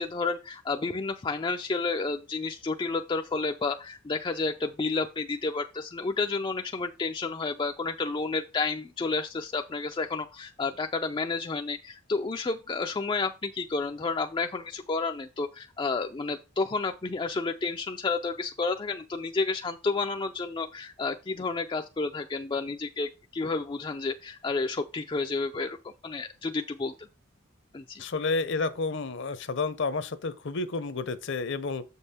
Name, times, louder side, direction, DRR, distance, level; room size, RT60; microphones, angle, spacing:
voice 1, 0.0-25.8 26.0-27.1 27.7-28.0, left 3 dB, 20° left, 0.3 m, -31 dB
voice 2, 28.0-31.8, left 3 dB, 50° left, 0.7 m, -30 dB
7.2 x 5.4 x 4.2 m
head